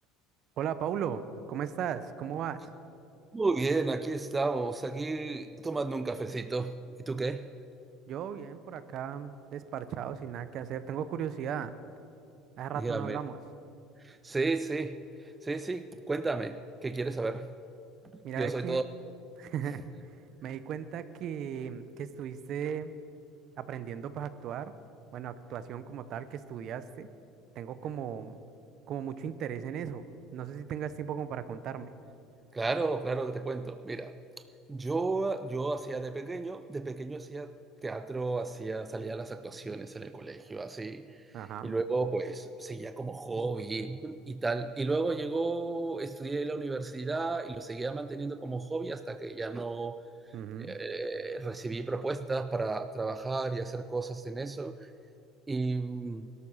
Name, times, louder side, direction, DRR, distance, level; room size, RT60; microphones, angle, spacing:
voice 1, 0.6-2.6 8.1-11.7 12.6-13.4 18.2-18.8 19.4-19.9 20.4-22.9 23.6-24.7 25.1-27.1 27.5-28.4 28.9-30.0 30.3-31.9 41.3-41.8 50.3-50.8, right 8 dB, 55° right, 13 dB, 0.9 m, -36 dB
voice 2, 3.3-6.8 7.1-7.5 12.8-13.2 14.0-17.5 18.4-18.8 32.5-34.1 34.7-37.5 37.8-41.2 41.6-50.0 50.6-54.9 55.5-56.3, right 3 dB, 15° right, 10 dB, 0.5 m, -33 dB
17.5 x 12.5 x 5.7 m, 2.6 s
supercardioid pair, 110°, 0 cm